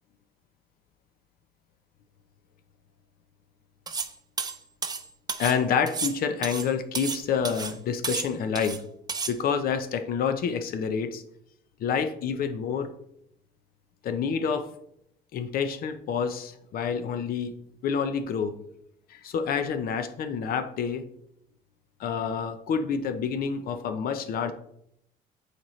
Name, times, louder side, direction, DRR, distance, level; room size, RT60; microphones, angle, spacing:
sound 1, 3.9-4.1 4.4-5.6 5.9-7.2 7.5-7.8 8.0-8.8 9.1-9.3, right 5 dB, 25° right, 0.5 m, -32 dB
voice 1, 5.4-8.8 9.3-11.2 11.8-12.9 14.0-14.7 15.3-17.5 17.8-18.6 19.1-21.0 22.0-24.5, left 6 dB, 60° left, 9 dB, 0.6 m, -28 dB
7.3 x 4.4 x 3.1 m, 0.76 s
cardioid pair, 110°, 17 cm